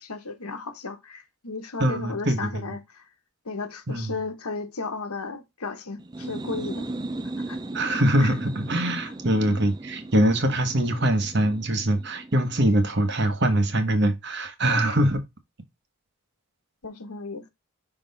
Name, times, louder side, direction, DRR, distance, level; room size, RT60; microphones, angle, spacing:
voice 1, 0.0-3.1 3.4-6.9 7.5-7.6 8.2-8.3 16.8-17.5, left 4 dB, 85° left, 1.3 m, -34 dB
voice 2, 1.8-2.6 3.9-4.1 7.7-15.2, right 1 dB, 50° right, 1.2 m, -23 dB
sound 1, 6.0-13.5, right 2 dB, 20° right, 0.5 m, -37 dB
6.1 x 3.9 x 4.0 m
head